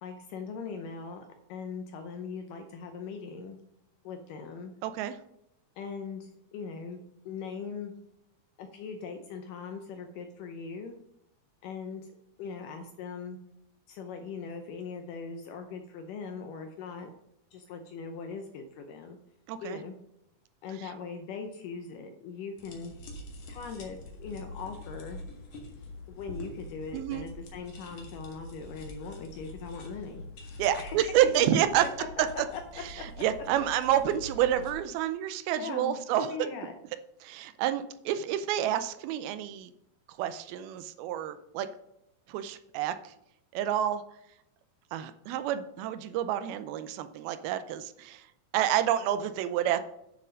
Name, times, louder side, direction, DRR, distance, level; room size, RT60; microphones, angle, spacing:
voice 1, 0.0-3.6 4.0-4.7 5.8-7.9 8.6-11.0 11.6-12.0 12.4-13.4 13.9-17.1 17.5-19.2 19.6-19.9 20.6-22.9 23.5-25.2 26.1-31.6 32.0-32.6 33.0-33.1 35.6-36.7, left 5 dB, 75° left, 5 dB, 2.0 m, -40 dB
voice 2, 4.8-5.2 19.5-19.8 26.9-27.3 30.6-31.9 33.2-36.5 37.2-39.7 40.2-41.7 42.3-43.1 43.5-44.0 44.9-48.3 48.5-49.8, right 11 dB, 80° right, 11 dB, 2.5 m, -29 dB
sound 1, 22.6-34.7, left 2 dB, 50° left, 2.3 m, -45 dB
9.4 x 6.6 x 5.1 m, 0.82 s
omnidirectional pair, 4.4 m